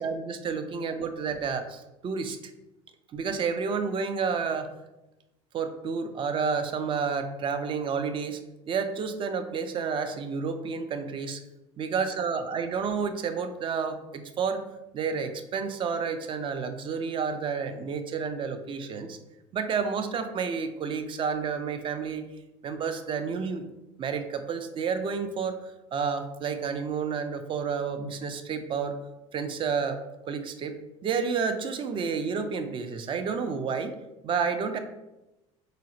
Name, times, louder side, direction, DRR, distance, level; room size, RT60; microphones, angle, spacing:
voice 1, 0.0-2.4 3.1-4.7 5.5-8.4 8.7-11.4 11.8-14.6 14.9-19.2 19.5-22.3 22.6-23.6 24.0-29.0 29.3-30.0 30.3-33.9 34.2-34.8, right 5 dB, 35° right, 8 dB, 0.4 m, -30 dB
3.8 x 2.0 x 2.6 m, 0.98 s
hypercardioid pair, 85°, 15 cm